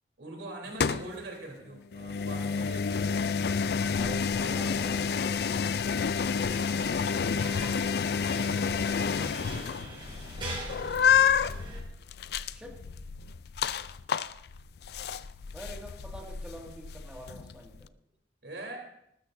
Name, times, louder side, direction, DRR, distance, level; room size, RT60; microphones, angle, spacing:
voice 1, 0.2-3.5 18.4-18.8, right 2 dB, 90° right, 0 dB, 3.7 m, -42 dB
sound 1, 0.7-1.1 1.9-17.9, left 6 dB, 60° left, 0.4 m, -29 dB
voice 2, 4.0-5.7 12.5-12.9 15.5-17.9, equal, 5° right, -1 dB, 2.1 m, -46 dB
sound 2, 6.5-11.8, right 2 dB, 30° right, 5.4 m, -42 dB
20.0 x 12.5 x 2.7 m, 0.77 s
head